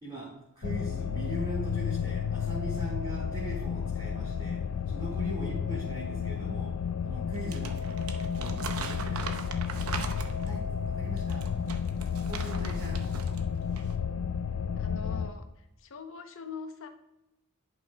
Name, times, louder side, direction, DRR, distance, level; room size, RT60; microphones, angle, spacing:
voice 1, 0.0-4.6 4.9-6.7 7.0-7.8 8.4-9.6 10.0-10.1 10.4-11.4 12.3-13.1, right 1 dB, 20° right, -6 dB, 2.0 m, -40 dB
sound 1, 0.6-15.3, left 7 dB, 90° left, 0.4 m, -32 dB
Crumpling crinkling, 7.3-10.6 11.2-13.4 13.7-13.9, right 4 dB, 75° right, 0.7 m, -40 dB
voice 2, 14.8-16.9, left 5 dB, 65° left, 7 dB, 0.8 m, -43 dB
10.5 x 5.8 x 2.3 m, 0.93 s
head